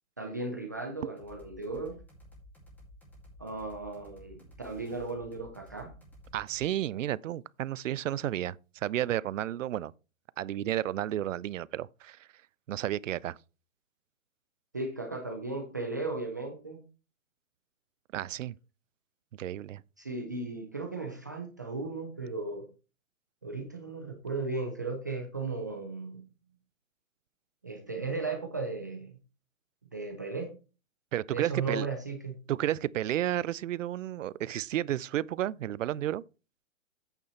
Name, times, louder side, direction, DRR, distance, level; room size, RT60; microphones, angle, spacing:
voice 1, 0.2-2.0 3.4-5.9 14.7-16.8 20.0-22.7 23.4-26.2 27.6-29.2 29.9-30.5 31.3-32.3, right 3 dB, 15° right, 0.4 m, -36 dB
sound 1, 1.2-6.7, left 1 dB, 5° left, 2.1 m, -53 dB
voice 2, 6.3-9.9 10.4-12.3 12.7-13.4 18.1-18.5 19.4-19.8 31.1-31.9 32.5-36.2, right 12 dB, 65° right, 0.5 m, -32 dB
8.4 x 6.6 x 4.2 m
hypercardioid pair, 155°, 41 cm